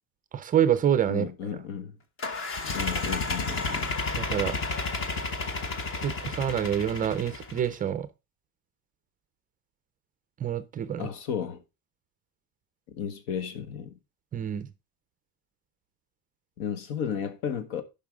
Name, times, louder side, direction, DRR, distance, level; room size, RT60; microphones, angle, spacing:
voice 1, 0.3-1.3 4.2-4.6 6.0-8.1 10.4-11.1 14.3-14.7, right 9 dB, 25° right, 0.4 m, -26 dB
voice 2, 1.1-1.9 2.6-4.0 11.0-11.6 12.9-14.0 16.6-17.8, left 8 dB, 80° left, 1.5 m, -33 dB
sound 1, 2.2-7.7, left 3 dB, 30° left, 1.1 m, -31 dB
9.0 x 5.5 x 4.7 m
cardioid pair, 165°, 39 cm